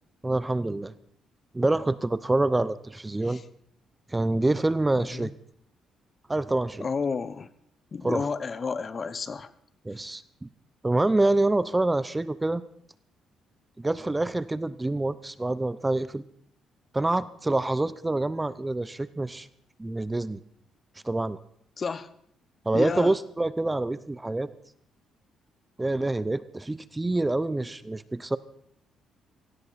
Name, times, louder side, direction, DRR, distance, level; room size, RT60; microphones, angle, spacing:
voice 1, 0.2-0.9 1.5-3.4 4.1-5.3 6.3-6.8 8.0-8.2 9.8-10.5 10.8-12.6 13.8-16.2 16.9-19.5 19.8-20.4 21.0-21.4 22.7-24.5 25.8-28.4, right 2 dB, 15° right, 16 dB, 0.7 m, -26 dB
voice 2, 5.0-5.3 6.8-7.5 7.9-9.5 9.9-10.0 21.8-22.1 22.7-23.1, left 5 dB, 40° left, 15 dB, 0.9 m, -31 dB
17.5 x 15.5 x 4.2 m, 0.66 s
cardioid pair, 85°, 0 cm